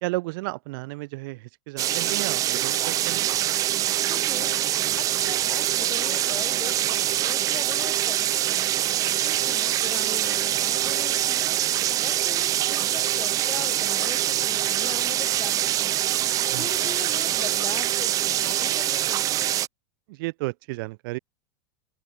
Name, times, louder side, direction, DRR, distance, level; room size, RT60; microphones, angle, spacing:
voice 1, 0.0-3.3 16.5-16.7 20.1-21.2, right 23 dB, 60° right, 1.7 m, -33 dB
sound 1, 1.8-19.7, right 13 dB, 25° right, 0.6 m, -24 dB
voice 2, 4.0-4.5 5.0-8.7 9.2-11.5 12.0-16.0 16.6-19.2, left 8 dB, 20° left, 4.2 m, -40 dB
open air
supercardioid pair, 160°, 13 cm